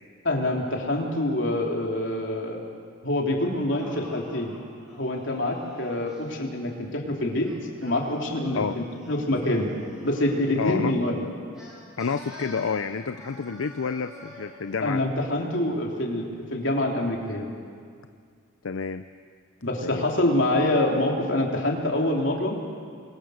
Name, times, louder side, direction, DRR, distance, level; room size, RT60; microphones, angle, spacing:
voice 1, 0.2-2.6 3.0-4.5 5.0-7.5 7.8-9.7 10.0-11.2 14.8-17.5 19.6-22.6, left 1 dB, 60° left, 0 dB, 3.4 m, -26 dB
Singing, 3.4-6.2 7.3-10.5 11.5-14.6, left 1 dB, ahead, 7.8 m, -47 dB
voice 2, 10.6-10.9 12.0-15.0 18.6-19.1 19.8-20.3, left 5 dB, 85° left, 10 dB, 0.6 m, -29 dB
28.0 x 22.5 x 6.5 m, 2.2 s
head